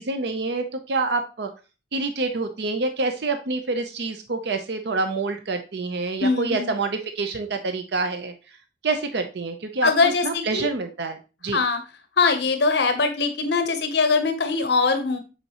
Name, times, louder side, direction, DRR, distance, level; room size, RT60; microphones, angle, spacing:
voice 1, 0.0-1.5 1.9-8.3 8.8-11.2 11.4-11.6, right 3 dB, 70° right, 7 dB, 0.6 m, -27 dB
voice 2, 6.2-6.7 9.8-10.7 11.5-11.8 12.2-15.2, left 4 dB, 70° left, 8 dB, 0.8 m, -22 dB
8.0 x 4.4 x 2.9 m, 0.31 s
head